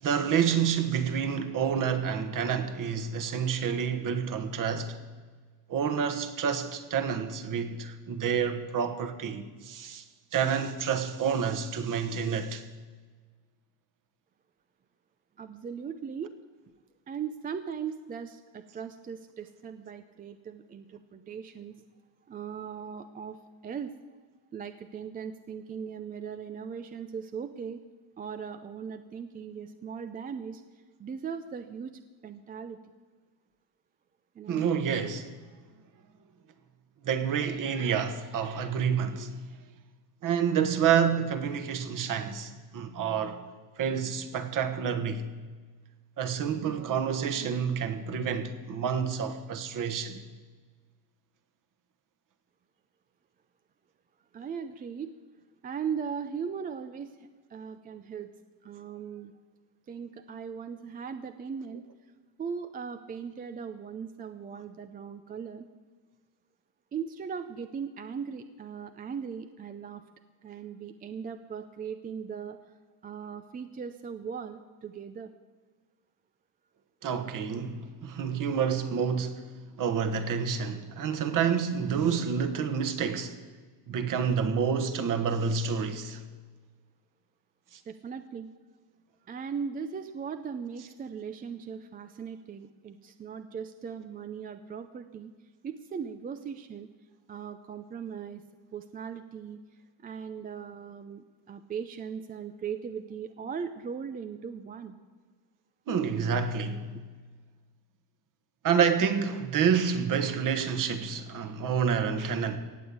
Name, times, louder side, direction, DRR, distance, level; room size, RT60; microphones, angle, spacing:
voice 1, 0.0-5.0 5.7-10.0 10.3-12.6 34.5-35.3 37.0-39.4 40.2-43.4 43.8-45.3 46.2-50.2 77.0-83.4 83.9-86.2 87.7-87.8 105.9-107.0 108.6-112.6, right 7 dB, 40° right, 1.4 m, -28 dB
voice 2, 15.4-16.3 17.1-21.8 22.2-24.0 24.5-27.8 28.2-32.9 34.4-34.7 54.3-55.1 55.6-58.3 58.6-59.3 59.9-61.8 62.4-65.7 66.9-70.0 70.4-72.6 73.0-75.3 87.8-88.5 89.2-95.3 95.6-96.9 97.3-98.4 98.7-105.0, right 6 dB, 20° right, 0.4 m, -39 dB
17.5 x 7.8 x 8.5 m
cardioid pair, 135°, 48 cm